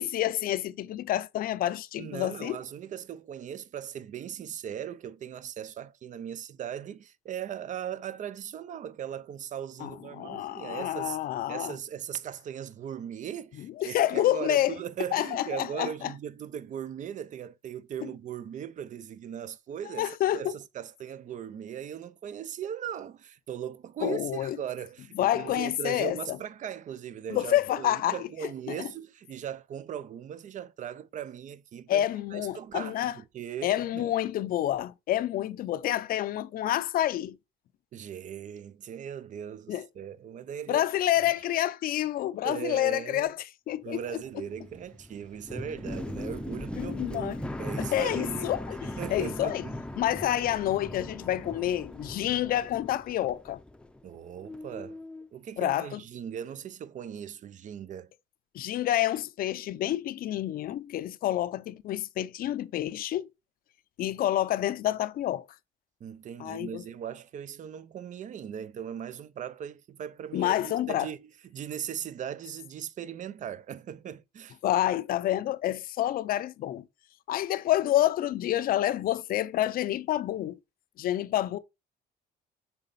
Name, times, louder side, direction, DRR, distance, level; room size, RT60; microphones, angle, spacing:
voice 1, 0.0-2.6 9.8-11.8 13.6-14.8 15.1-16.1 18.0-18.1 19.9-20.5 24.0-24.6 25.2-26.4 27.3-28.2 28.7-28.9 31.9-33.1 33.6-37.4 39.7-39.9 40.7-43.4 43.7-44.0 46.8-47.4 47.8-49.7 50.0-53.6 55.6-56.0 58.5-63.3 64.0-65.5 66.4-66.8 70.3-71.1 74.6-76.8 77.3-80.6 81.0-81.6, left 13 dB, 60° left, 0.6 m, -28 dB
voice 2, 2.0-11.2 11.5-32.0 32.3-34.1 37.9-40.8 41.2-41.3 42.4-43.3 43.8-48.5 49.0-49.8 54.0-55.0 55.3-58.1 66.0-74.6, right 9 dB, 45° right, 0.6 m, -39 dB
sound 1, 44.0-54.2 54.4-55.3, left 1 dB, 5° left, 0.6 m, -39 dB
6.9 x 4.0 x 4.1 m
cardioid pair, 110°, 17 cm